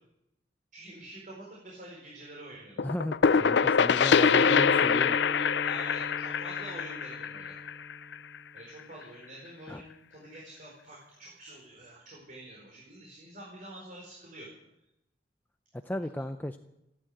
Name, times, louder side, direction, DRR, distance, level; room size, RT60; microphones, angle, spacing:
voice 1, 0.7-2.8 4.2-4.4 5.6-7.6 8.5-14.5, right 1 dB, 45° right, -3 dB, 4.5 m, -47 dB
sound 1, 2.8-8.4, left 6 dB, 65° left, 0.5 m, -24 dB
voice 2, 2.8-5.2 9.7-9.8 15.8-16.6, left 1 dB, 10° left, 7 dB, 0.5 m, -34 dB
sound 2, 4.5-8.8, left 1 dB, 85° right, 5.5 m, -41 dB
15.0 x 12.5 x 7.7 m, 0.85 s
head